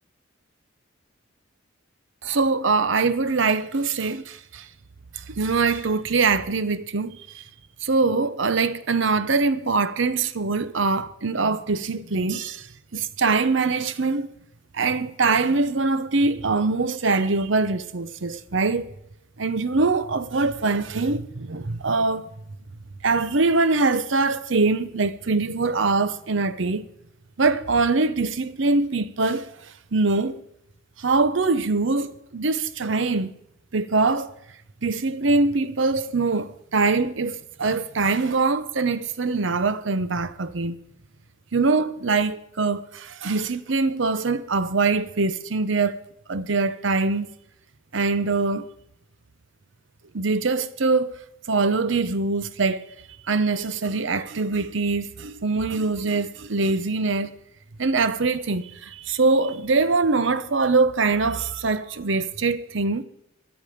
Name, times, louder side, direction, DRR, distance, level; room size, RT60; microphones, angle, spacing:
voice 1, 2.2-4.7 5.1-7.4 7.8-12.7 12.9-14.3 14.7-18.9 19.4-22.3 23.0-26.9 27.4-30.4 31.0-33.3 33.7-34.3 34.8-40.8 41.5-46.0 46.3-47.3 47.9-48.7 50.1-52.8 53.3-57.4 57.8-63.0, right 3 dB, 65° right, 0.8 m, -23 dB
16.0 x 11.0 x 5.1 m
head